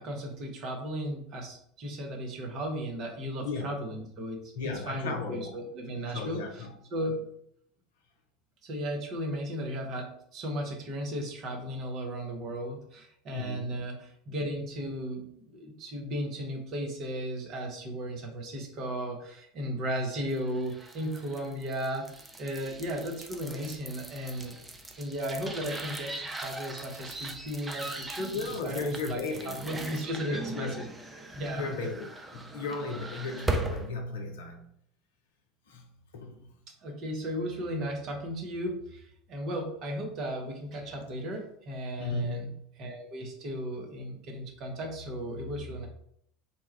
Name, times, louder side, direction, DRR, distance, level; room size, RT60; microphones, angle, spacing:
voice 1, 0.0-7.2 8.6-22.1 22.4-24.6 25.0-30.9 31.3-31.9 36.8-42.5 42.8-45.9, equal, 45° right, 0.8 m, -35 dB
voice 2, 3.4-3.7 4.5-5.6 6.1-6.7 13.3-13.8 28.2-29.5 30.3-30.8 31.5-34.7 35.7-35.9 36.1-36.5 42.0-42.7, left 3 dB, 65° left, 0.6 m, -35 dB
sound 1, 20.2-33.9, right 2 dB, 15° right, 0.5 m, -39 dB
2.9 x 2.3 x 4.2 m
figure-of-eight pair, 70°, 0 cm